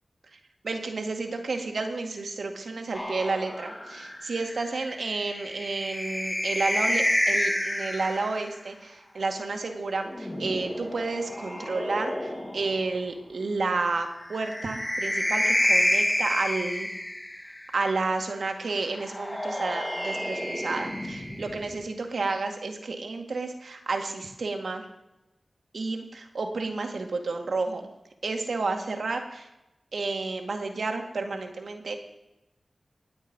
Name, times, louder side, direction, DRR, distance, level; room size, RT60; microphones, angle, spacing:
voice 1, 0.6-16.9 17.7-24.8 25.7-27.8 28.2-29.5 29.9-32.0, right 3 dB, 80° right, 4 dB, 2.1 m, -31 dB
sound 1, 2.9-8.5 9.8-12.8 14.2-17.7 18.9-21.8, equal, 20° left, 2.6 m, -29 dB
20.5 x 8.1 x 5.4 m, 0.96 s
cardioid pair, 45°, 0 cm